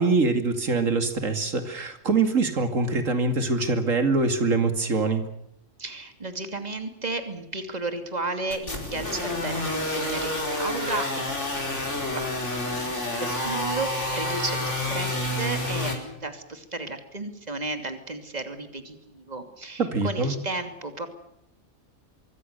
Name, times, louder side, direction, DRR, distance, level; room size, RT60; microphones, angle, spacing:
voice 1, 0.0-5.2 19.8-20.3, right 3 dB, 90° right, 7 dB, 2.8 m, -24 dB
voice 2, 5.8-21.1, right 2 dB, 30° right, 7 dB, 2.9 m, -34 dB
sound 1, 8.5-15.9, left 1 dB, 65° left, 5.3 m, -29 dB
25.5 x 23.5 x 6.8 m, 0.80 s
omnidirectional pair, 1.3 m